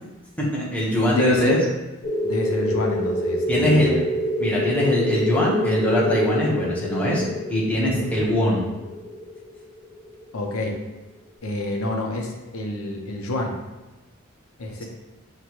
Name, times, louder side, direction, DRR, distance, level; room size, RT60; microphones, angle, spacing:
voice 1, 0.4-1.6 3.5-3.9 4.4-7.2 7.5-8.6, equal, 5° left, -6 dB, 0.8 m, -22 dB
voice 2, 1.1-1.6 2.2-4.0 7.8-8.1 10.3-10.8 11.4-13.6 14.6-14.8, left 1 dB, 85° left, 1 dB, 0.6 m, -27 dB
sound 1, 2.0-10.4, left 1 dB, 45° left, 0.6 m, -26 dB
6.5 x 2.2 x 2.9 m, 1.1 s
head